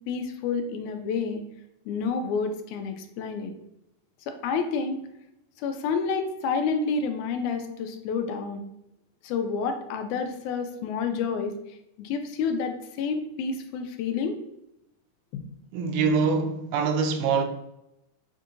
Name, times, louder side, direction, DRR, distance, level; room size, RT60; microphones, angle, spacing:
voice 1, 0.1-1.4 1.9-3.5 4.3-5.0 5.6-8.7 9.2-11.5 12.0-14.4 15.3-15.4, left 5 dB, 80° left, 1.9 m, -29 dB
voice 2, 15.7-17.4, right 5 dB, 90° right, 2.1 m, -24 dB
6.7 x 2.7 x 2.5 m
omnidirectional pair, 3.5 m